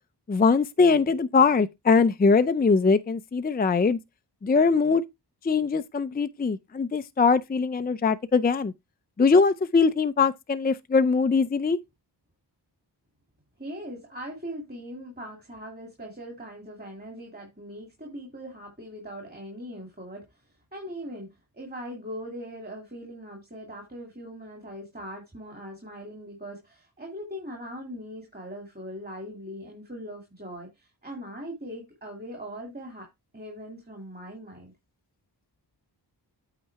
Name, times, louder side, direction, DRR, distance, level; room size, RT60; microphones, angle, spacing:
voice 1, 0.3-4.0 4.4-5.0 5.4-8.7 9.2-11.8, left 4 dB, 20° left, 0.5 m, -22 dB
voice 2, 13.6-33.1 33.3-34.7, equal, 20° right, 2.4 m, -40 dB
8.8 x 4.1 x 4.6 m
wide cardioid pair, 70°, 42 cm